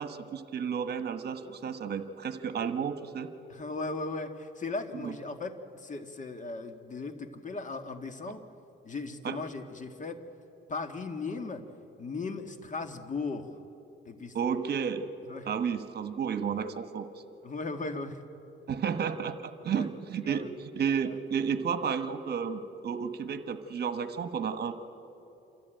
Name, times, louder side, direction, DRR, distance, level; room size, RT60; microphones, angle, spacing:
voice 1, 0.0-3.3 4.9-5.1 9.2-9.4 14.3-15.1 15.4-17.1 18.7-24.7, right 7 dB, 55° right, 10 dB, 1.3 m, -32 dB
voice 2, 3.5-8.4 8.8-10.2 10.7-11.6 12.0-13.5 14.1-14.3 15.3-15.5 17.4-18.2 19.7-19.9 20.2-20.5 21.1-21.2, left 3 dB, 40° left, 7 dB, 1.8 m, -37 dB
27.5 x 14.0 x 9.1 m, 2.9 s
cardioid pair, 90°, 20 cm